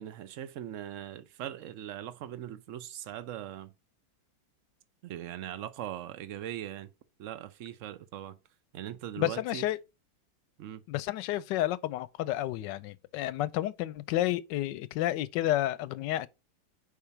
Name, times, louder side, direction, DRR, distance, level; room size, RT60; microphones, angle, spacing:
voice 1, 0.0-3.7 5.0-6.9 7.2-8.4 8.7-9.6 10.6-10.8, right 11 dB, 70° right, 0.7 m, -40 dB
voice 2, 9.2-9.8 10.9-16.3, left 14 dB, 75° left, 1.2 m, -31 dB
5.0 x 4.8 x 5.7 m
omnidirectional pair, 2.1 m